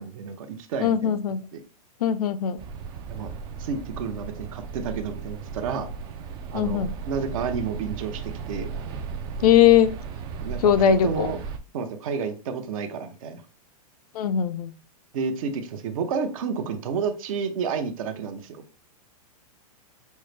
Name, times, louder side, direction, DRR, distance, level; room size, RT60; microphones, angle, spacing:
voice 1, 0.0-1.2 3.1-3.3 3.6-5.9 6.5-8.7 10.4-11.4 11.7-13.4 15.1-18.6, right 6 dB, 60° right, 0.7 m, -30 dB
voice 2, 0.8-1.4 2.0-2.6 6.5-6.9 9.4-9.9 10.6-11.3 14.1-14.7, left 9 dB, 70° left, 0.5 m, -20 dB
sound 1, 2.6-11.6, right 5 dB, 25° right, 0.4 m, -36 dB
5.4 x 2.0 x 3.3 m
hypercardioid pair, 140°, 20 cm